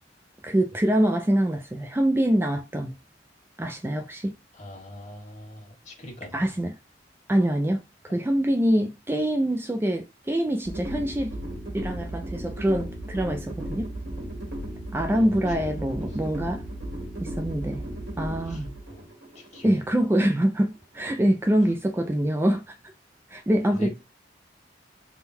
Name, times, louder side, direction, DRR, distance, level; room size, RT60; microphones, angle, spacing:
voice 1, 0.4-2.9 3.6-4.3 6.3-6.7 7.3-11.4 11.7-13.9 14.9-16.6 17.2-17.8 18.2-18.7 19.6-22.8 23.3-23.9, right 1 dB, 15° right, 0.3 m, -25 dB
voice 2, 4.5-6.5 8.1-8.2 15.1-15.4 15.8-16.2 18.4-19.8 23.7-23.9, equal, 40° left, 1.6 m, -42 dB
sound 1, 10.6-20.7, right 1 dB, 75° right, 1.6 m, -35 dB
3.6 x 2.2 x 4.2 m
head